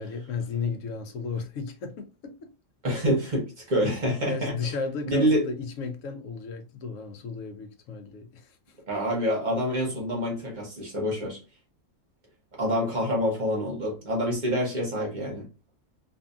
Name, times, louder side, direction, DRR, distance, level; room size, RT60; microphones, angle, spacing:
voice 1, 0.0-2.3 4.3-8.6, left 4 dB, 75° left, 1.0 m, -34 dB
voice 2, 2.8-4.7 5.1-5.5 8.9-11.4 12.6-15.5, equal, 40° right, 0.8 m, -27 dB
2.6 x 2.6 x 2.3 m
omnidirectional pair, 1.4 m